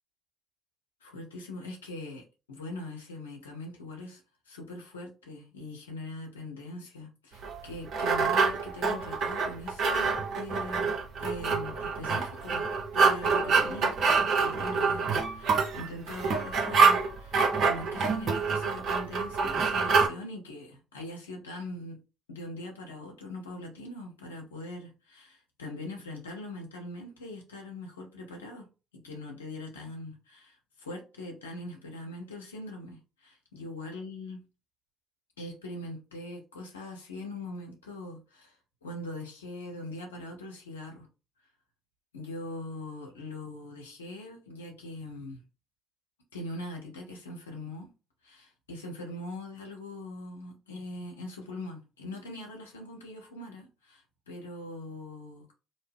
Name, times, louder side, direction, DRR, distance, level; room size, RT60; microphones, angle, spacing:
voice 1, 1.0-4.2 4.5-12.7 12.9-22.0 22.3-28.7 28.9-34.4 35.4-38.6 38.8-41.1 42.1-45.4 46.3-47.9 48.2-55.5, left 1 dB, 85° left, 0.8 m, -42 dB
sound 1, 7.4-20.1, right 5 dB, 55° right, 0.8 m, -26 dB
2.6 x 2.1 x 3.3 m
figure-of-eight pair, 50°, 0 cm